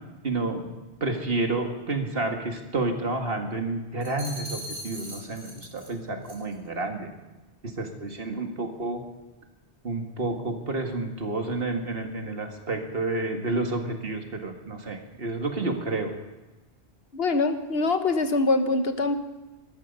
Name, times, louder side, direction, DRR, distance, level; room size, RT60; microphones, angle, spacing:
voice 1, 0.2-0.7 1.0-7.1 7.6-9.0 9.8-16.1, right 2 dB, 65° right, 4 dB, 2.0 m, -30 dB
sound 1, 4.0-5.9 6.2-6.5, equal, 35° right, 3.3 m, -40 dB
voice 2, 17.1-19.2, left 3 dB, 70° left, 8 dB, 1.4 m, -24 dB
19.0 x 13.5 x 5.4 m, 1.1 s
omnidirectional pair, 1.1 m